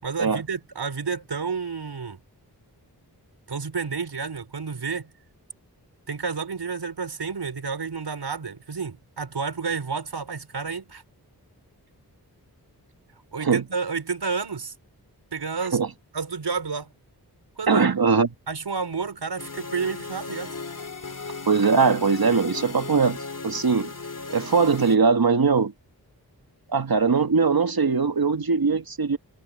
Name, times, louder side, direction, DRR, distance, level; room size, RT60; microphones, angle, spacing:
voice 1, 0.0-2.2 3.5-5.1 6.1-11.0 13.3-14.7 15.3-15.8 16.1-16.9 17.6-17.9 18.5-20.5, right 5 dB, 85° right, 5.5 m, -30 dB
voice 2, 17.7-18.3 21.5-23.9 24.3-25.7 26.7-29.2, right 5 dB, 65° right, 1.8 m, -21 dB
sound 1, 19.4-25.0, left 4 dB, 50° left, 3.3 m, -36 dB
wide cardioid pair, 55°, 40 cm